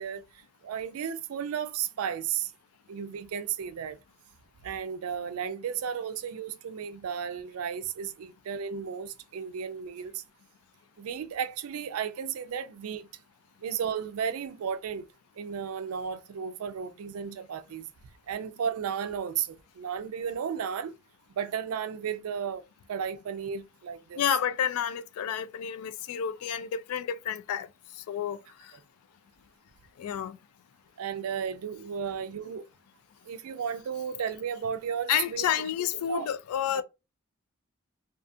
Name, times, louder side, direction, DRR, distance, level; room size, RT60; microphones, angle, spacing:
voice 1, 0.0-2.5 2.9-4.0 4.6-10.2 11.0-13.1 13.6-15.0 15.4-17.9 18.3-20.9 21.3-24.3 28.7-28.8 31.0-32.7 33.2-35.5 35.9-36.3 36.7-36.8, right 7 dB, 80° right, 0.4 m, -34 dB
voice 2, 24.2-27.7 28.1-28.7 30.0-30.4 35.1-36.8, left 9 dB, 85° left, 0.3 m, -30 dB
2.4 x 2.4 x 2.5 m
head